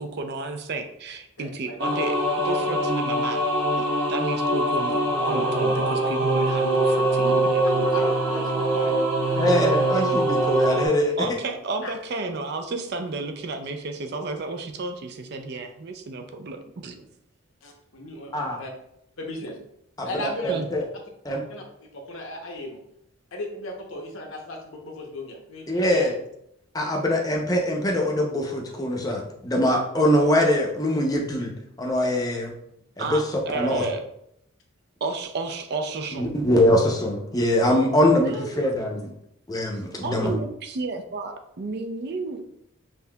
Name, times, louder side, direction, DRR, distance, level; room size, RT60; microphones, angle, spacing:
voice 1, 0.0-2.2 2.4-3.5 4.1-8.0 11.2-17.0 20.5-20.7 33.0-34.0 35.0-36.3 38.2-38.6 40.0-42.4, right 3 dB, 50° right, 6 dB, 0.4 m, -32 dB
voice 2, 1.4-1.8 2.4-2.5 7.9-8.9 11.8-11.9 17.6-18.7 19.2-19.6 20.0-20.5 21.5-21.6 21.9-22.8 23.3-26.1, left 1 dB, 70° left, 1 dB, 0.8 m, -36 dB
sound 1, 1.8-10.9, right 1 dB, 85° right, 0.9 m, -23 dB
voice 3, 9.3-11.1 18.3-18.6 20.0-20.8 21.2-21.4 25.7-26.1 26.7-31.5 31.8-32.5 33.0-33.2 33.5-33.8 36.1-39.1 39.5-40.3, left 1 dB, 15° left, -1 dB, 0.6 m, -23 dB
5.6 x 2.7 x 2.2 m, 0.76 s
head